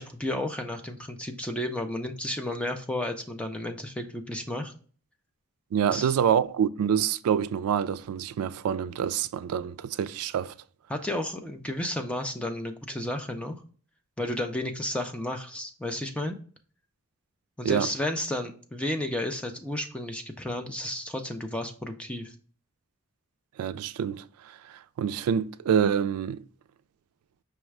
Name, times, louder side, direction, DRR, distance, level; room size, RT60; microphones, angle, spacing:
voice 1, 0.0-4.7 5.9-6.1 10.9-13.6 14.2-16.4 17.6-22.3, left 1 dB, 5° left, 0.4 m, -32 dB
voice 2, 5.7-10.5 17.6-17.9 23.6-24.2 25.0-26.4, right 8 dB, 75° right, 0.3 m, -26 dB
5.5 x 2.1 x 4.6 m
head